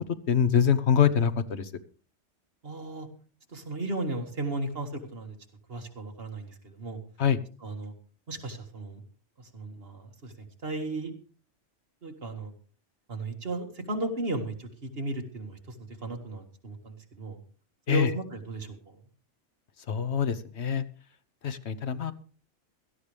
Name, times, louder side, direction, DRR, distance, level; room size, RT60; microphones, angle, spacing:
voice 1, 0.3-1.7 7.2-7.4 17.9-18.1 19.9-20.8 21.4-22.1, left 8 dB, 65° left, 13 dB, 1.1 m, -24 dB
voice 2, 2.6-3.1 3.5-5.3 5.7-7.0 7.6-7.9 8.3-9.0 9.4-10.3 10.6-11.1 12.0-12.5 13.1-17.4 17.9-19.0, right 2 dB, 55° right, 4 dB, 2.1 m, -35 dB
17.0 x 13.5 x 3.4 m, 0.40 s
omnidirectional pair, 1.2 m